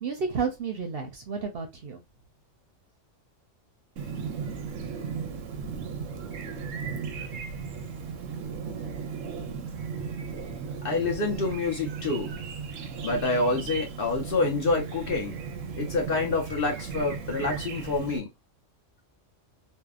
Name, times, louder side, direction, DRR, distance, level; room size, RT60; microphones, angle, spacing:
voice 1, 0.0-2.0, right 5 dB, 60° right, 0.7 m, -31 dB
Chirp tweet, 4.0-18.2, right 6 dB, 85° right, 1.0 m, -36 dB
voice 2, 10.8-12.3 13.0-15.3 15.8-18.3, left 3 dB, 55° left, 0.8 m, -27 dB
2.7 x 2.1 x 2.3 m
omnidirectional pair, 1.3 m